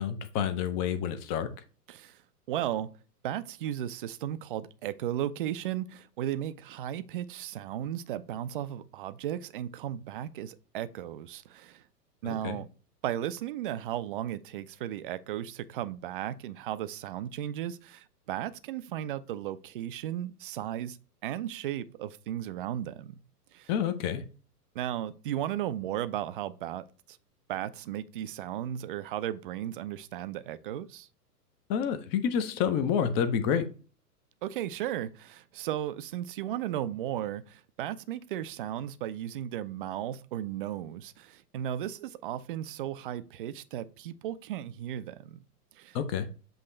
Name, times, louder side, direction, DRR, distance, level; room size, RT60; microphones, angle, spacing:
voice 1, 0.0-1.5 12.2-12.6 23.7-24.2 31.7-33.7 45.9-46.3, left 8 dB, 20° left, 0.5 m, -28 dB
voice 2, 2.5-2.9 3.2-11.8 12.2-12.7 13.0-21.0 21.2-23.2 23.5-23.7 24.8-26.9 27.5-31.1 34.4-45.4 45.8-46.0, right 11 dB, 35° right, 0.4 m, -35 dB
7.8 x 2.9 x 4.2 m
figure-of-eight pair, 110°, 48 cm